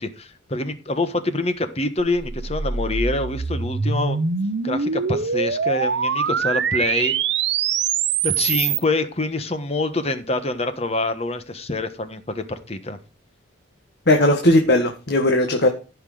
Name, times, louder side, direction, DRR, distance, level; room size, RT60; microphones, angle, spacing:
voice 1, 0.0-4.2 4.6-7.2 8.2-13.0, left 2 dB, 30° left, 10 dB, 1.3 m, -26 dB
sound 1, 2.0-8.8, right 6 dB, 60° right, 0.8 m, -24 dB
voice 2, 14.1-15.7, left 1 dB, 55° left, 4 dB, 1.5 m, -17 dB
14.5 x 6.0 x 4.9 m, 0.33 s
head